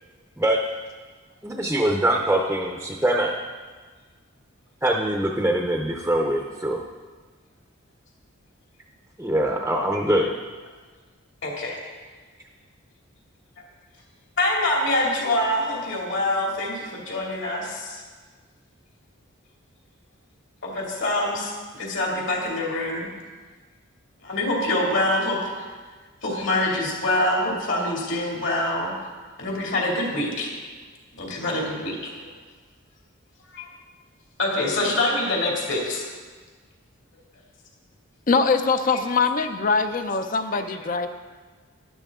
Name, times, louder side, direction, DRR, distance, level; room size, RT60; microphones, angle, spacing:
voice 1, 1.4-3.3 4.8-6.8 9.2-10.3, right 1 dB, 10° right, 1 dB, 0.6 m, -23 dB
voice 2, 11.4-11.8 14.4-18.0 20.6-23.1 24.2-25.7 26.2-28.9 29.4-30.5 31.2-32.1 33.5-33.7 34.4-36.0 40.5-40.6, left 1 dB, 65° left, -2 dB, 2.7 m, -25 dB
voice 3, 38.3-41.1, left 4 dB, 40° left, 9 dB, 0.5 m, -22 dB
12.5 x 10.5 x 3.7 m, 1.4 s
head